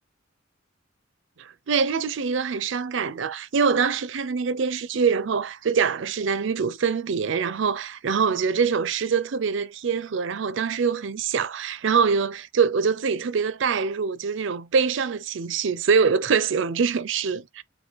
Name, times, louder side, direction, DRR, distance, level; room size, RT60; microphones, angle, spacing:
voice 1, 1.4-17.6, right 5 dB, 65° right, 0.5 m, -24 dB
4.5 x 2.2 x 4.0 m
head